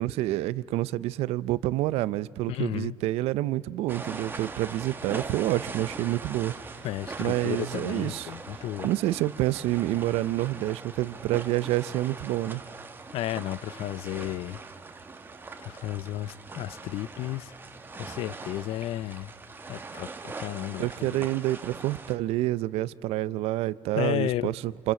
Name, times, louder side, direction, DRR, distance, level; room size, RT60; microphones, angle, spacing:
voice 1, 0.0-6.5 7.2-8.3 8.8-12.6 20.8-24.9, right 16 dB, 80° right, 0.6 m, -28 dB
voice 2, 2.5-3.0 6.8-8.9 13.1-14.6 15.6-17.5 18.0-19.3 19.7-21.3 24.0-24.5, left 14 dB, 70° left, 0.6 m, -33 dB
sound 1, 3.9-22.2, right 4 dB, 20° right, 1.4 m, -41 dB
28.5 x 27.0 x 7.6 m
cardioid pair, 125°, 10 cm